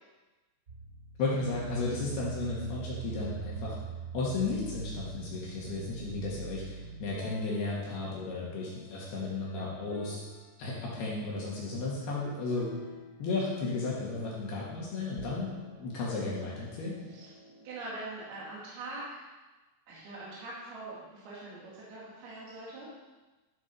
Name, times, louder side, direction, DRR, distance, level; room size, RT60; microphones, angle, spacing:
sound 1, 0.7-9.0 9.5-10.4 12.2-14.0 15.0-17.6, right 5 dB, 80° right, 0.9 m, -44 dB
voice 1, 1.2-3.8 4.1-10.3 10.6-12.7 13.2-17.0, left 3 dB, 60° left, -5 dB, 3.5 m, -34 dB
voice 2, 17.6-19.0 19.9-20.9 21.3-21.6 21.9-22.9, right 2 dB, 60° right, -8 dB, 4.1 m, -42 dB
12.5 x 7.5 x 5.4 m, 1.2 s
omnidirectional pair, 5.5 m